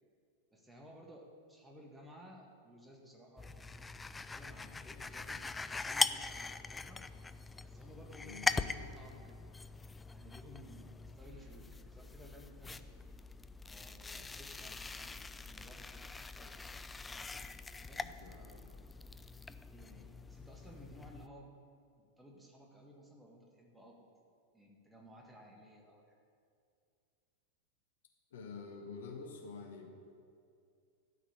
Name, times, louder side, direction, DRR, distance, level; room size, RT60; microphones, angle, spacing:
voice 1, 0.5-3.5 4.3-7.0 7.6-9.5 10.1-12.9 13.7-16.5 17.8-18.6 19.7-21.5 22.0-24.3 24.5-26.2, equal, 10° right, 0 dB, 1.9 m, -57 dB
sound 1, 3.4-21.3, left 3 dB, 10° left, 0.3 m, -42 dB
voice 2, 8.2-9.0 14.1-14.3 17.9-18.8 28.3-29.9, left 4 dB, 60° left, 1 dB, 1.7 m, -49 dB
12.5 x 6.0 x 8.8 m, 2.4 s
figure-of-eight pair, 90°, 0 cm